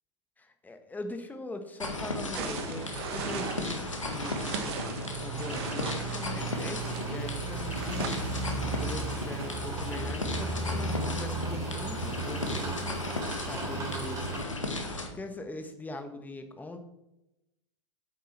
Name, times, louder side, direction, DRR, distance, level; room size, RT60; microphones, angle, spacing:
voice 1, 0.4-4.9 5.2-8.3 8.8-14.2 15.1-16.8, left 2 dB, 10° left, 7 dB, 1.3 m, -41 dB
sound 1, 1.8-15.1, left 2 dB, 90° left, 1.7 m, -35 dB
sound 2, 2.3-9.6, right 6 dB, 55° right, 1.5 m, -40 dB
sound 3, 3.8-14.4, right 4 dB, 20° right, 3.5 m, -36 dB
8.2 x 8.0 x 4.4 m, 0.90 s
figure-of-eight pair, 100°, 16 cm